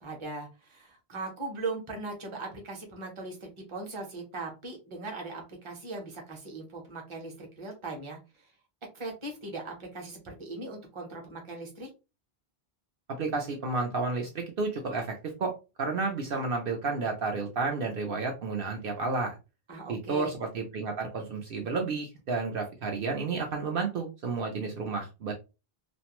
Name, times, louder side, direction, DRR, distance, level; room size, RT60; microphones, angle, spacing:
voice 1, 0.0-8.2 8.9-11.9 19.7-20.3, right 3 dB, 30° right, 1 dB, 0.8 m, -39 dB
voice 2, 13.2-15.1 15.4-19.4 19.9-25.3, right 4 dB, 65° right, 2 dB, 0.8 m, -31 dB
2.5 x 2.1 x 2.9 m, 0.28 s
omnidirectional pair, 1.0 m